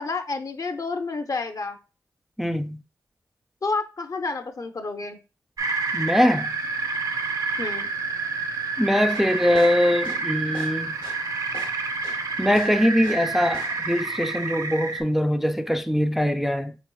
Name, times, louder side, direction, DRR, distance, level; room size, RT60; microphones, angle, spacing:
voice 1, 0.0-1.8 3.6-5.2 7.6-7.9, left 3 dB, 55° left, 0.6 m, -29 dB
voice 2, 2.4-2.8 5.9-6.5 8.8-11.0 12.4-16.8, equal, 5° right, 0.3 m, -22 dB
sound 1, 5.6-15.0, right 4 dB, 60° right, 0.6 m, -28 dB
sound 2, 9.0-13.3 13.5-13.9, left 2 dB, 75° left, 1.0 m, -41 dB
4.4 x 2.9 x 2.2 m
cardioid pair, 40°, 7 cm